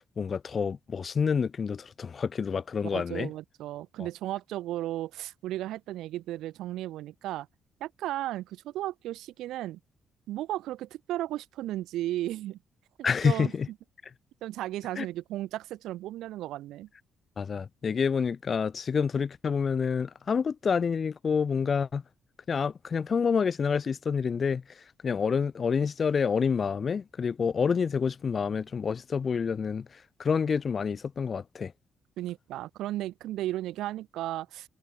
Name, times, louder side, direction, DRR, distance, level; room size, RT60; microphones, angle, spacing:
voice 1, 0.2-3.3 13.0-13.7 15.0-15.1 17.4-22.0 22.5-24.6 25.0-29.9 30.2-31.7, left 6 dB, 45° left, 0.4 m, -28 dB
voice 2, 2.9-7.5 7.8-9.8 10.3-12.6 13.0-13.5 14.4-16.9 32.2-34.7, right 14 dB, 85° right, 3.2 m, -35 dB
cardioid pair, 90°, 0 cm